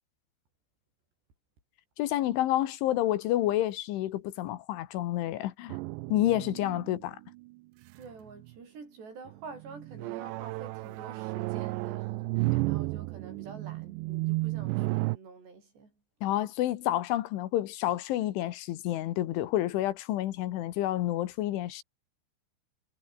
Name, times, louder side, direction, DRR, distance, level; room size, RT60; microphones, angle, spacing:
voice 1, 2.0-5.8 6.1-7.2 16.2-21.8, left 14 dB, 80° left, 3.8 m, -29 dB
sound 1, 5.7-7.5 8.0-8.5 9.3-15.2, right 22 dB, 85° right, 2.5 m, -33 dB
voice 2, 7.9-16.0, right 4 dB, 60° right, 10.0 m, -48 dB
omnidirectional pair, 5.5 m